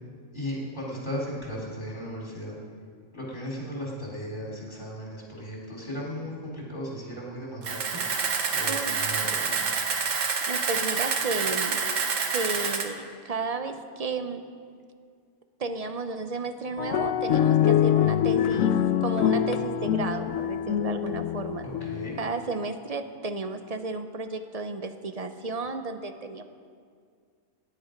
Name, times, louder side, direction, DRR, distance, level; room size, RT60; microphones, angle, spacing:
voice 1, 0.3-2.6 3.1-8.0 8.5-9.8 21.6-22.2, equal, 40° left, -5 dB, 3.8 m, -36 dB
Camera, 7.6-12.8, right 5 dB, 75° right, 1.4 m, -27 dB
voice 2, 10.5-11.8 12.3-14.4 15.6-18.7 19.0-21.7 22.2-26.4, right 3 dB, 40° right, 8 dB, 0.6 m, -33 dB
sound 1, 16.8-22.3, left 9 dB, 80° left, 1.0 m, -24 dB
17.0 x 10.5 x 5.2 m, 2.1 s
omnidirectional pair, 1.3 m